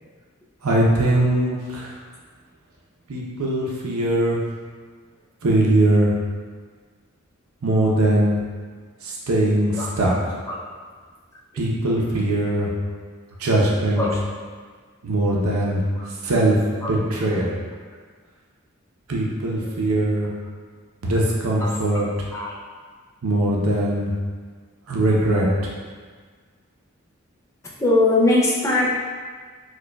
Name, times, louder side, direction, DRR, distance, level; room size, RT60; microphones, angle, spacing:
voice 1, 0.6-1.9 3.1-4.4 5.4-6.1 7.6-8.4 9.0-10.1 11.6-12.7 13.4-14.0 15.0-15.8 16.2-16.6 16.9-17.5 19.1-20.3 21.0-22.0 23.2-24.1 24.9-25.7, right 1 dB, 85° right, -4 dB, 0.6 m, -21 dB
voice 2, 21.6-22.6 27.8-29.1, left 2 dB, 15° left, -5 dB, 0.4 m, -22 dB
4.8 x 2.3 x 2.2 m, 1.6 s
head